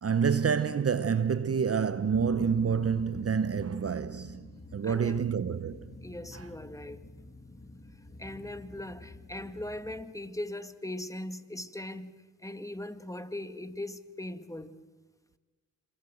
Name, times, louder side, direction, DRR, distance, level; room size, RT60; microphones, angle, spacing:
voice 1, 0.0-5.9 6.3-6.5, right 6 dB, 35° right, 0.9 m, -28 dB
sound 1, 2.1-10.0, left 2 dB, 25° left, 3.1 m, -48 dB
voice 2, 4.8-5.3 6.0-7.0 8.2-14.7, left 1 dB, 10° left, 2.1 m, -40 dB
27.0 x 22.5 x 7.8 m
supercardioid pair, 50°, 39 cm